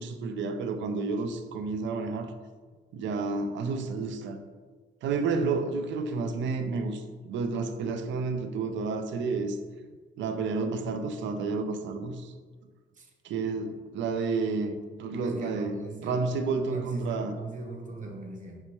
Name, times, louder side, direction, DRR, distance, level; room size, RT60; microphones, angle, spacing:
voice 1, 0.0-2.3 2.9-4.4 5.0-9.6 10.2-12.3 13.2-14.7 15.0-17.4, right 4 dB, 70° right, 8 dB, 0.5 m, -30 dB
voice 2, 15.2-16.2 16.6-18.6, right 3 dB, 40° right, 1 dB, 0.9 m, -40 dB
4.4 x 3.4 x 3.0 m, 1.4 s
cardioid pair, 90°, 20 cm